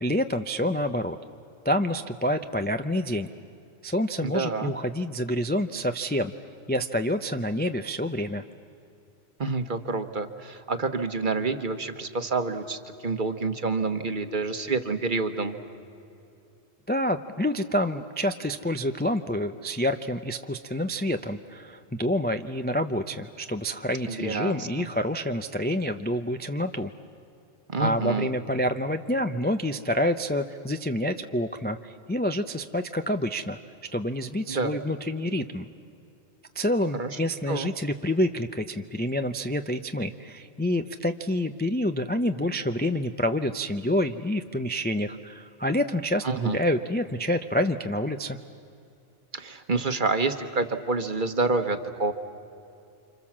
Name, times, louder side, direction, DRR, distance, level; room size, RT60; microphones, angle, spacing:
voice 1, 0.0-1.2 1.6-3.3 3.8-6.3 6.7-8.4 16.9-26.9 27.8-33.6 33.9-35.7 36.6-48.4, left 1 dB, 15° left, 8 dB, 0.4 m, -27 dB
voice 2, 4.2-4.7 9.4-15.6 24.1-24.9 27.7-28.3 34.5-34.7 37.0-37.1 37.5-37.7 46.2-46.6 49.3-52.1, right 3 dB, 45° right, 8 dB, 1.3 m, -28 dB
30.0 x 26.5 x 7.4 m, 2.7 s
omnidirectional pair, 1.2 m